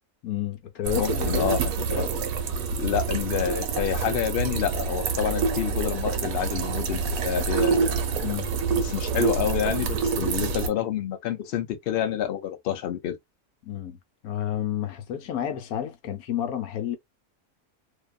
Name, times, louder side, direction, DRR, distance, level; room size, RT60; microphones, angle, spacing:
voice 1, 0.2-1.5 8.2-8.5 13.6-17.0, left 10 dB, 80° left, 1.1 m, -30 dB
sound 1, 0.8-10.7, right 5 dB, 75° right, 1.1 m, -27 dB
voice 2, 1.0-2.1 2.8-7.9 8.8-13.2, left 10 dB, 60° left, 0.6 m, -28 dB
2.7 x 2.3 x 2.2 m
omnidirectional pair, 1.6 m